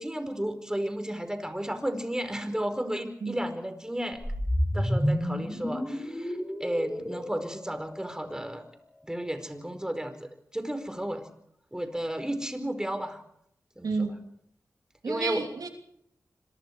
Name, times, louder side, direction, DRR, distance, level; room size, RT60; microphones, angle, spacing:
voice 1, 0.0-4.2 4.7-8.6 9.0-11.2 11.7-13.2 13.8-14.1 15.1-15.4, equal, 10° right, 4.6 m, -33 dB
sound 1, 4.1-8.4, equal, 10° left, 6.9 m, -30 dB
voice 2, 13.8-14.3 15.0-15.7, right 4 dB, 85° right, 3.1 m, -31 dB
26.0 x 24.0 x 4.7 m
wide cardioid pair, 65°, 6 cm